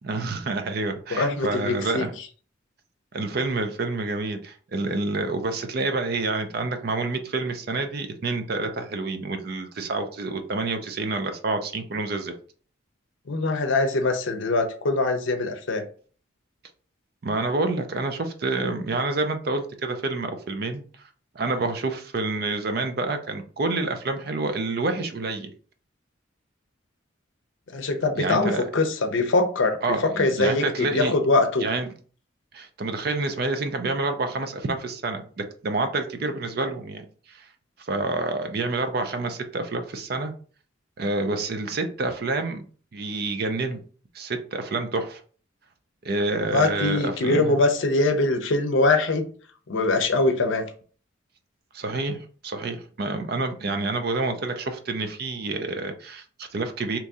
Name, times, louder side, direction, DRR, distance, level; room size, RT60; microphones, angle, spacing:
voice 1, 0.0-2.1 3.1-12.3 17.2-21.1 21.3-25.5 28.2-28.7 29.8-31.2 31.6-31.9 32.5-37.5 37.8-40.3 41.0-42.6 42.9-43.8 44.1-45.2 46.0-47.6 51.7-57.0, right 3 dB, 50° right, 7 dB, 0.4 m, -28 dB
voice 2, 1.1-2.1 13.3-15.8 27.7-29.8 30.2-31.7 46.5-49.3 49.7-50.6, left 2 dB, 70° left, 6 dB, 0.6 m, -22 dB
2.9 x 2.6 x 3.5 m, 0.42 s
head